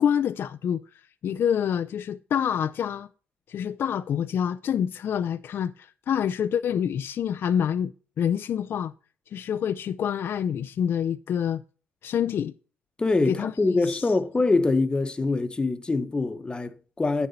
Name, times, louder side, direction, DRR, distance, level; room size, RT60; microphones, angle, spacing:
voice 1, 0.0-3.1 3.5-7.9 8.2-8.9 9.3-11.6 12.0-12.5 13.3-13.5 13.9-14.1, left 8 dB, 55° left, 0.3 m, -27 dB
voice 2, 13.0-17.3, left 3 dB, 20° left, 0.9 m, -24 dB
9.1 x 6.7 x 4.1 m
cardioid pair, 120°, 5 cm